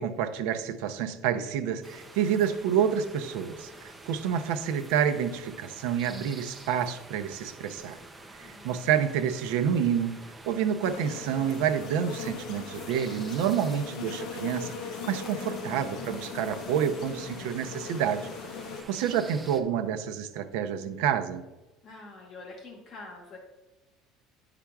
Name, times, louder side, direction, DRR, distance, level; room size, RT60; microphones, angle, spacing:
voice 1, 0.0-8.0 8.4-10.2 10.5-18.3 18.9-21.4, right 8 dB, 85° right, 10 dB, 0.6 m, -28 dB
sound 1, 1.8-19.6, right 2 dB, 10° right, 0.5 m, -48 dB
voice 2, 8.4-8.9 21.8-23.4, left 3 dB, 30° left, -1 dB, 1.1 m, -46 dB
sound 2, 10.8-18.8, left 6 dB, 55° left, 0.7 m, -39 dB
9.9 x 5.8 x 2.3 m, 1.1 s
cardioid pair, 170°, 0 cm